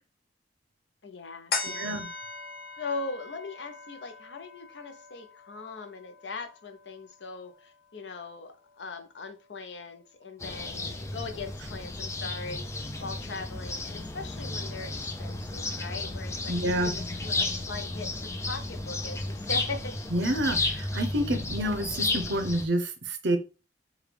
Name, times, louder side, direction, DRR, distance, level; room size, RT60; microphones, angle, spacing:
voice 1, 1.0-2.0 2.8-18.1 18.4-20.0, left 3 dB, 80° left, 0.6 m, -40 dB
sound 1, 1.5-8.3 8.7-8.8, left 4 dB, 55° left, 0.8 m, -40 dB
voice 2, 1.7-2.1 16.5-16.9 20.1-23.4, right 1 dB, 75° right, 0.7 m, -28 dB
sound 2, 10.4-22.7, left 2 dB, 15° left, 0.4 m, -33 dB
4.8 x 2.3 x 3.3 m
head